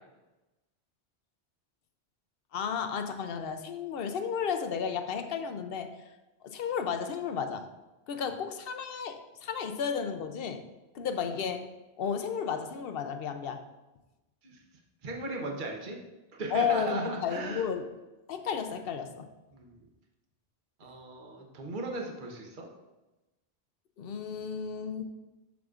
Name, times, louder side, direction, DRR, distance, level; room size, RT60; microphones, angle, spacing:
voice 1, 2.5-5.9 6.4-7.7 8.1-10.6 10.9-11.7 12.0-13.6 16.5-17.9 18.3-19.3 24.0-25.1, left 7 dB, 65° left, 7 dB, 0.8 m, -33 dB
voice 2, 15.0-16.0 16.3-17.7 19.5-19.8 20.8-22.7, right 2 dB, 50° right, 1 dB, 1.0 m, -37 dB
7.0 x 6.4 x 2.4 m, 1.0 s
omnidirectional pair, 1.1 m